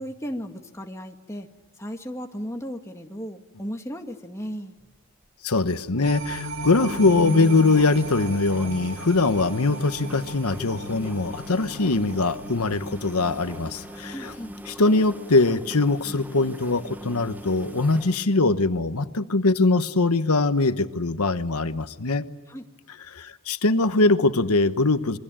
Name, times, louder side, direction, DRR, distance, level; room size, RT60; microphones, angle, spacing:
voice 1, 0.0-1.5 1.8-4.8 14.1-14.6 22.5-22.6, equal, 10° left, 4 dB, 1.9 m, -35 dB
sound 1, 4.8-5.0 5.2-5.3 5.6-5.7 6.0-6.1 6.6-18.2, equal, 10° right, 0.8 m, -39 dB
voice 2, 5.4-14.3 14.7-22.2 23.1-25.2, left 3 dB, 85° left, 11 dB, 1.2 m, -22 dB
sound 2, 6.0-14.4 14.8-14.9, equal, 55° right, 3.2 m, -37 dB
28.0 x 23.5 x 8.9 m, 1.3 s
head